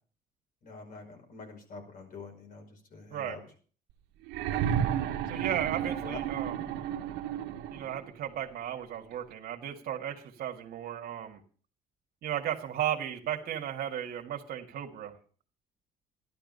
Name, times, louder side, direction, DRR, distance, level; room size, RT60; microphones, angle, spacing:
voice 1, 0.6-3.4 6.0-6.2, left 3 dB, 55° left, 4 dB, 5.3 m, -45 dB
sound 1, 4.3-8.1 9.3-9.4, right 9 dB, 90° right, 1.2 m, -32 dB
voice 2, 5.3-6.6 7.7-11.4 12.2-15.1, right 10 dB, 65° right, 2 dB, 2.0 m, -35 dB
13.5 x 12.0 x 5.5 m, 0.42 s
cardioid pair, 110°, 17 cm